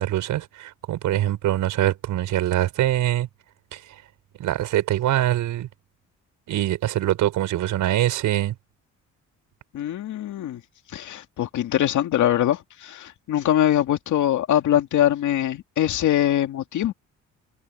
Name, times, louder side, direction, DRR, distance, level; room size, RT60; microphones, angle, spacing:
voice 1, 0.0-3.3 3.7-4.0 4.4-5.7 6.5-8.6, right 13 dB, 85° right, 5.5 m, -23 dB
voice 2, 9.7-10.6 10.9-16.9, left 11 dB, 75° left, 2.4 m, -23 dB
cardioid pair, 90°, 30 cm